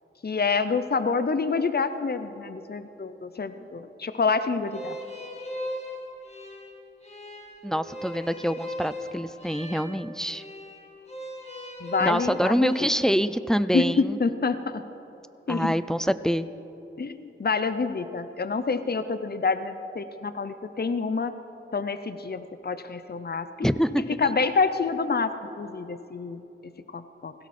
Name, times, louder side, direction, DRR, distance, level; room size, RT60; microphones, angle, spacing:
voice 1, 0.2-5.0 11.8-12.9 13.7-14.8 15.5-15.7 17.0-21.3 21.7-23.7 24.2-27.3, left 4 dB, 50° left, 11 dB, 0.6 m, -27 dB
sound 1, 4.7-12.9, left 1 dB, 30° left, 2.2 m, -38 dB
voice 2, 7.6-10.4 12.0-14.2 15.5-16.5 23.6-24.2, equal, 5° left, 13 dB, 0.4 m, -25 dB
17.0 x 16.5 x 4.3 m, 3.0 s
wide cardioid pair, 65°, 21 cm